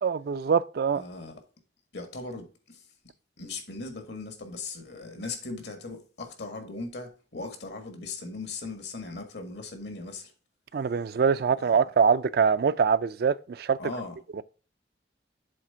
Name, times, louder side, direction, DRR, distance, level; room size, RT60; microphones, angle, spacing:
voice 1, 0.0-1.0 10.7-13.8 14.3-14.4, right 6 dB, 60° right, 0.4 m, -24 dB
voice 2, 0.9-1.3 1.9-2.8 3.4-10.3 11.6-11.7 13.8-14.2, left 3 dB, 75° left, 1.7 m, -38 dB
7.7 x 3.6 x 5.6 m
head